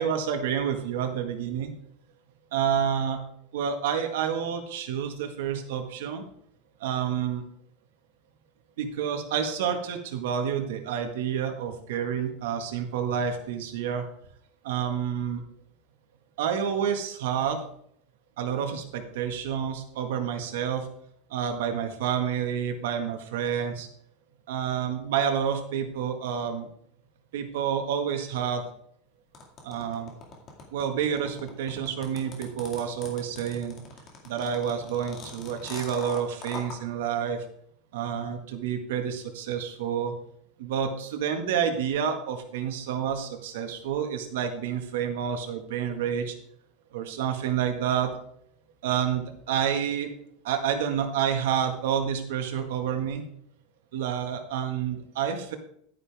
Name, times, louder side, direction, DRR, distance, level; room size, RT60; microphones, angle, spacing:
voice 1, 0.0-1.7 2.5-3.2 3.5-6.2 6.8-7.4 8.8-14.0 14.6-15.4 16.4-17.6 18.4-20.9 21.3-23.9 24.5-26.7 27.3-28.6 29.6-30.1 30.7-33.8 34.2-37.4 37.9-40.1 40.6-46.3 46.9-48.1 48.8-50.1 50.4-53.2 53.9-55.6, right 8 dB, 85° right, 5 dB, 1.8 m, -29 dB
sound 1, 29.3-36.8, left 4 dB, 25° left, 2.1 m, -42 dB
11.5 x 9.7 x 3.6 m, 0.68 s
supercardioid pair, 175°, 0 cm